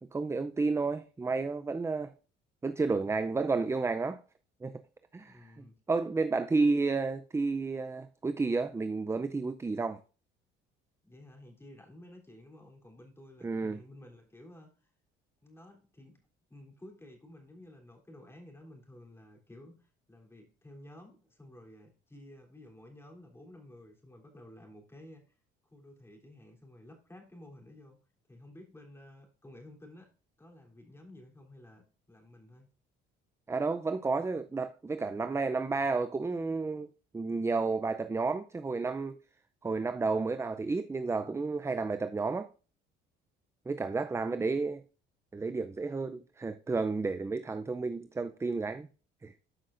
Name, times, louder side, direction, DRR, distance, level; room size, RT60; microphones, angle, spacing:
voice 1, 0.1-2.1 2.6-4.2 4.6-4.7 5.1-5.4 5.9-10.0 13.4-13.8 33.5-36.9 37.1-39.2 39.6-42.5 43.7-44.8 45.3-48.9 49.2-49.3, right 3 dB, 15° right, 0.5 m, -31 dB
voice 2, 5.2-5.8 6.6-6.8 11.0-14.9 15.4-25.4 25.6-28.0 28.3-30.1 30.4-32.7 35.3-35.9 44.1-44.4, left 1 dB, 10° left, 3.4 m, -53 dB
12.5 x 5.8 x 2.5 m
cardioid pair, 105°, 21 cm